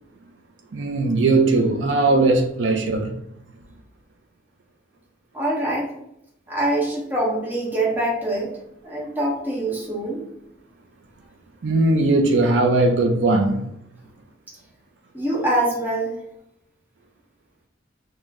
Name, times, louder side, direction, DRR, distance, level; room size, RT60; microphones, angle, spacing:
voice 1, 0.7-3.1 11.6-13.6, right 2 dB, 75° right, 0.5 m, -19 dB
voice 2, 5.3-5.9 6.5-8.5 8.8-10.2 15.1-16.2, right 1 dB, 10° right, 1.0 m, -24 dB
6.3 x 2.2 x 3.6 m
head